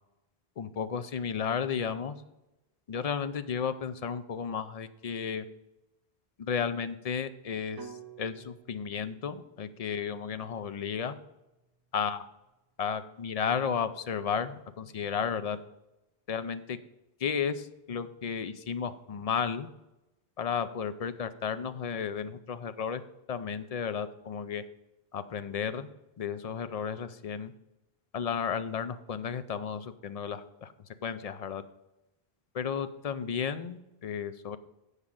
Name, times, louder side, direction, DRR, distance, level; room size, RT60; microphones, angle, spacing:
voice 1, 0.6-2.2 2.9-5.5 6.4-11.2 11.9-12.2 12.8-15.6 16.3-16.8 17.2-19.7 20.4-23.0 23.3-24.6 25.1-25.9 26.2-27.5 28.1-30.7 31.0-31.6 32.5-34.6, left 7 dB, 45° left, 11 dB, 0.6 m, -33 dB
sound 1, 7.8-11.8, right 5 dB, 35° right, 0.4 m, -52 dB
8.2 x 5.1 x 7.2 m, 0.94 s
omnidirectional pair, 1.0 m